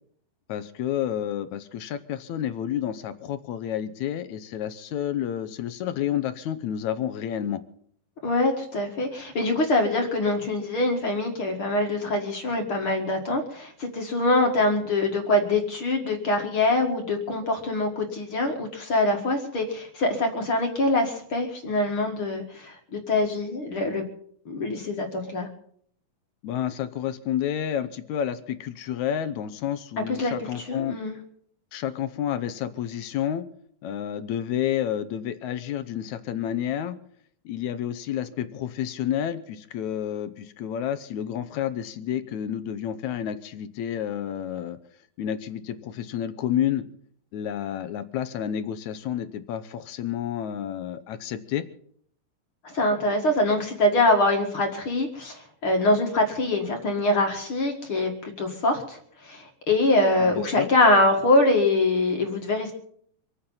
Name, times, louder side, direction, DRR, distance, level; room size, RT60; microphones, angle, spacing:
voice 1, 0.5-7.6 26.4-31.0 31.7-33.5 33.8-37.0 37.5-44.8 45.2-46.8 47.3-51.6 60.2-60.7, left 10 dB, 70° left, 11 dB, 1.9 m, -30 dB
voice 2, 8.2-24.1 24.5-25.5 30.1-31.2 52.6-62.7, left 2 dB, 45° left, 3 dB, 2.3 m, -24 dB
25.5 x 9.3 x 5.6 m, 0.62 s
omnidirectional pair, 4.1 m